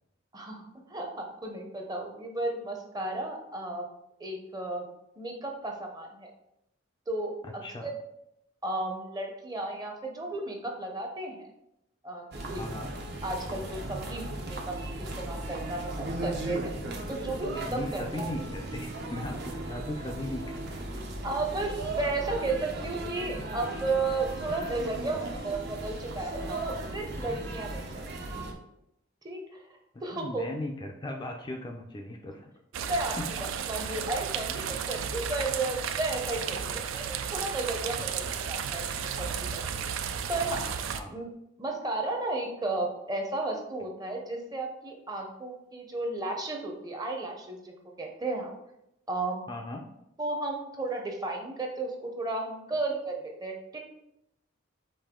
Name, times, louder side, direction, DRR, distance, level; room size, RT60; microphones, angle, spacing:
voice 1, 0.9-3.8 4.2-4.8 5.2-6.3 7.1-7.3 7.8-7.9 8.6-11.4 12.0-12.6 13.2-16.7 17.1-18.3 21.2-28.3 29.2-29.4 30.0-30.4 32.8-33.2 33.7-39.3 39.6-39.7 40.3-40.6 41.1-41.3 41.6-48.5 49.1-49.4 50.2-53.8, right 2 dB, 20° right, 2 dB, 0.7 m, -33 dB
voice 2, 7.4-7.9 12.5-12.9 17.7-21.1 30.1-32.5 33.2-33.4 38.2-38.3 40.9-41.2 49.5-49.9, left 1 dB, 20° left, 2 dB, 0.4 m, -38 dB
sound 1, 12.3-28.5, right 1 dB, 55° right, 0.7 m, -37 dB
sound 2, 32.7-41.0, right 7 dB, 80° right, 0.4 m, -33 dB
5.3 x 2.6 x 3.6 m, 0.82 s
head